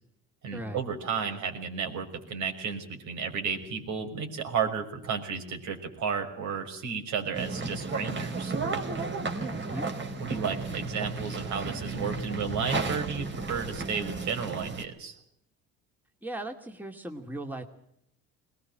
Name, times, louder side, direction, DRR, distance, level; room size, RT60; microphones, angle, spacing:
voice 1, 0.4-8.5 10.2-15.1, right 6 dB, 65° right, 4 dB, 5.9 m, -33 dB
sound 1, 7.3-14.8, right 3 dB, 35° right, 4.0 m, -33 dB
voice 2, 9.5-9.9 16.2-17.6, right 1 dB, 5° right, 4 dB, 2.4 m, -38 dB
22.0 x 20.0 x 7.5 m, 0.75 s
cardioid pair, 95°, 31 cm